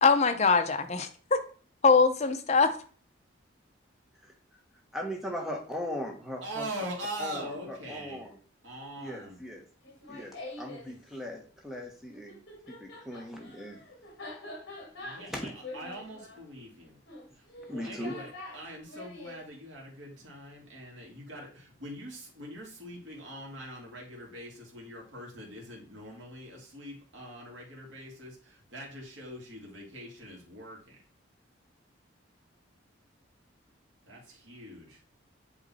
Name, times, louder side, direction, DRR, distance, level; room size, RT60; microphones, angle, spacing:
voice 1, 0.0-1.4 1.8-2.8, left 4 dB, 35° left, 7 dB, 0.6 m, -23 dB
voice 2, 4.9-6.7 7.2-8.4 9.0-9.6 10.1-12.4 12.7-13.8 15.3-15.5 17.7-18.2, equal, ahead, 1 dB, 1.1 m, -38 dB
voice 3, 6.4-8.2 8.6-9.4 10.8-11.0 15.0-17.0 17.7-31.0 34.0-35.0, right 1 dB, 70° right, -2 dB, 2.1 m, -43 dB
Laughter, 9.8-10.9 12.1-19.4, left 2 dB, 55° left, 1.8 m, -45 dB
8.0 x 3.1 x 4.1 m, 0.41 s
head